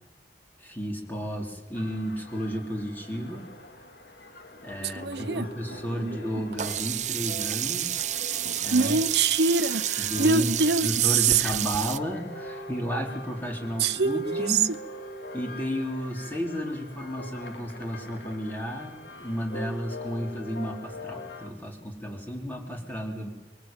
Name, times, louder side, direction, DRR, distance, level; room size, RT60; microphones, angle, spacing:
voice 1, 0.6-3.5 4.6-8.1 8.6-9.0 10.0-10.5 10.8-14.7 15.3-23.3, equal, 10° left, 4.0 m, -33 dB
sound 1, 1.7-21.5, left 1 dB, 70° left, 2.6 m, -43 dB
voice 2, 4.8-5.5 6.0-6.4 8.7-11.6 13.8-14.8, right 5 dB, 75° right, 0.9 m, -25 dB
Sink (filling or washing), 6.6-12.0, right 11 dB, 40° right, 0.8 m, -30 dB
23.5 x 23.0 x 9.1 m
head